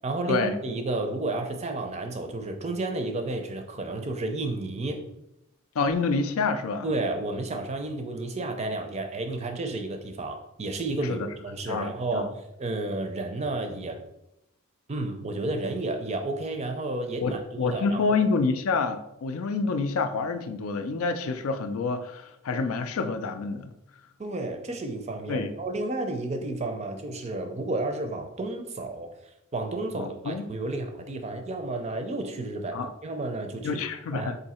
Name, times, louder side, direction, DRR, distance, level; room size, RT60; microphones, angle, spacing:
voice 1, 0.0-5.0 6.8-12.3 12.6-14.0 14.9-18.2 24.2-29.1 29.5-33.8 34.1-34.3, right 2 dB, 30° right, 5 dB, 0.4 m, -31 dB
voice 2, 5.8-6.9 11.0-11.2 11.7-12.3 17.2-23.7 25.3-25.5 29.9-30.5 32.7-32.9 33.6-34.4, left 4 dB, 70° left, 9 dB, 0.4 m, -28 dB
3.8 x 2.7 x 4.2 m, 0.83 s
head